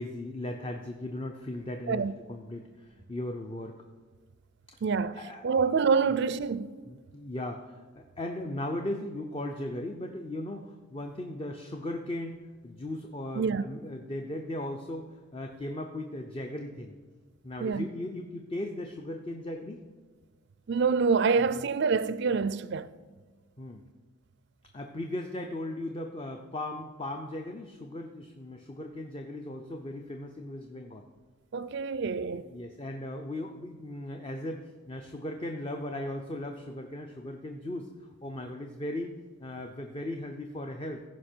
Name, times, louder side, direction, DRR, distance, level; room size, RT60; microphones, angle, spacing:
voice 1, 0.0-3.8 4.7-4.8 5.1-5.7 6.1-6.2 6.9-17.0 17.4-19.8 21.4-21.7 23.6-23.9 24.7-31.1 32.5-37.9 38.2-41.0, left 1 dB, 25° left, 0.5 m, -37 dB
voice 2, 4.8-6.8 13.4-13.6 17.6-17.9 20.7-22.9 31.5-32.5, right 5 dB, 55° right, 0.4 m, -26 dB
15.0 x 5.2 x 4.5 m
head